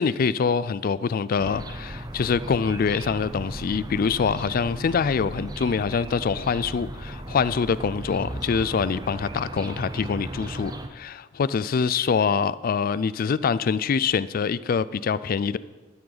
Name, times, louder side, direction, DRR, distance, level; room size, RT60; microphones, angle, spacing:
voice 1, 0.0-15.6, left 6 dB, 50° left, 0.4 m, -25 dB
sound 1, 1.4-10.9, right 1 dB, 20° right, 0.7 m, -36 dB
12.5 x 9.6 x 4.0 m
head